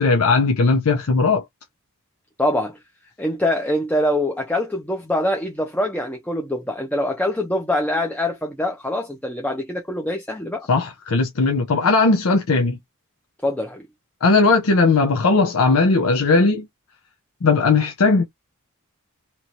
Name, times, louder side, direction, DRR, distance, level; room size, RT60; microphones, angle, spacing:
voice 1, 0.0-1.4 10.7-12.8 14.2-16.7 17.4-18.2, left 3 dB, 80° left, 0.6 m, -18 dB
voice 2, 2.4-2.8 3.2-10.7 13.4-13.9, left 1 dB, 5° left, 0.6 m, -24 dB
3.0 x 2.9 x 2.6 m
head